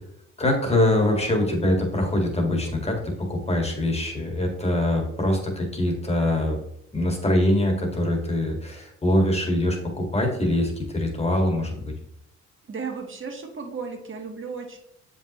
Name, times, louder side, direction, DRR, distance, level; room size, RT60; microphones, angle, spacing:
voice 1, 0.4-6.6 6.9-11.9, left 1 dB, 20° left, 2 dB, 1.8 m, -23 dB
voice 2, 12.7-14.8, right 5 dB, 40° right, 3 dB, 1.4 m, -34 dB
7.2 x 5.4 x 3.0 m, 0.76 s
cardioid pair, 90°, 30 cm